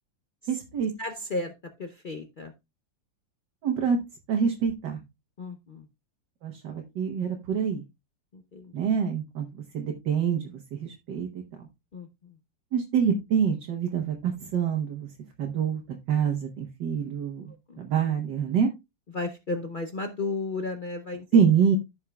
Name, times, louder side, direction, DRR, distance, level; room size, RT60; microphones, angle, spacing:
voice 1, 0.5-0.9 3.6-4.0 4.3-5.0 6.4-7.8 8.7-9.5 9.7-11.7 12.7-15.1 15.4-15.8 16.1-18.7 21.3-21.8, right 7 dB, 65° right, 2 dB, 1.7 m, -26 dB
voice 2, 1.0-1.5 1.8-2.5 5.4-5.9 8.3-8.7 11.9-12.3 17.7-17.8 19.1-21.3, left 3 dB, 75° left, 6 dB, 0.4 m, -34 dB
15.0 x 5.5 x 2.3 m, 0.23 s
omnidirectional pair, 2.1 m